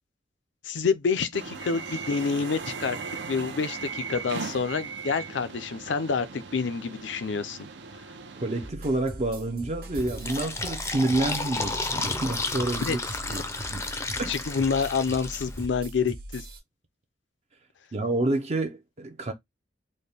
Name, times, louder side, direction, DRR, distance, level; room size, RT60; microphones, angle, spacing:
voice 1, 0.6-3.0 3.3-7.6 12.8-13.0 13.3-13.4 14.3-16.4, left 5 dB, 75° left, 0.5 m, -28 dB
sound 1, 1.3-8.7, right 5 dB, 70° right, 0.7 m, -38 dB
voice 2, 8.4-13.0 13.3-13.9 14.2-14.3 17.9-19.3, right 2 dB, 35° right, 0.5 m, -28 dB
sound 2, 8.6-16.6, right 1 dB, 55° right, 1.3 m, -41 dB
Fill (with liquid), 10.0-15.7, left 3 dB, 15° left, 0.5 m, -32 dB
4.2 x 2.2 x 3.3 m
head